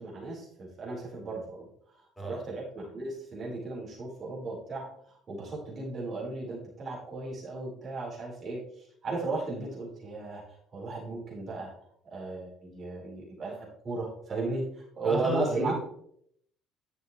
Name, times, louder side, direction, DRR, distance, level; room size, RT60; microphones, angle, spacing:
voice 1, 0.0-1.7 2.0-11.7 12.0-15.7, right 2 dB, 40° right, -4 dB, 4.4 m, -35 dB
voice 2, 15.0-15.7, right 2 dB, 10° left, 0 dB, 3.5 m, -33 dB
11.0 x 7.3 x 3.3 m, 0.68 s
figure-of-eight pair, 55°, 0 cm